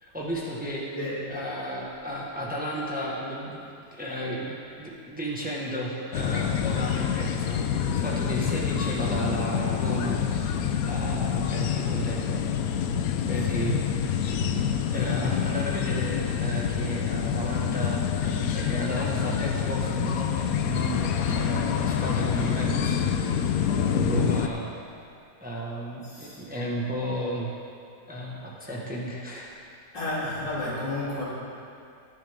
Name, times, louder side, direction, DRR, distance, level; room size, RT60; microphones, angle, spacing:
voice 1, 0.0-0.9 1.3-4.5 4.8-10.6 10.9-12.4 13.3-23.3 23.7-24.7 25.4-27.5 28.1-29.5, right 1 dB, 5° right, -4 dB, 1.3 m, -33 dB
voice 2, 0.9-1.4 13.3-13.5 23.7-23.8 26.0-26.4 29.9-31.2, left 1 dB, 90° left, -9 dB, 4.0 m, -32 dB
sound 1, 6.1-24.5, left 8 dB, 70° left, 0.9 m, -27 dB
20.0 x 7.4 x 3.7 m, 2.5 s
omnidirectional pair, 1.9 m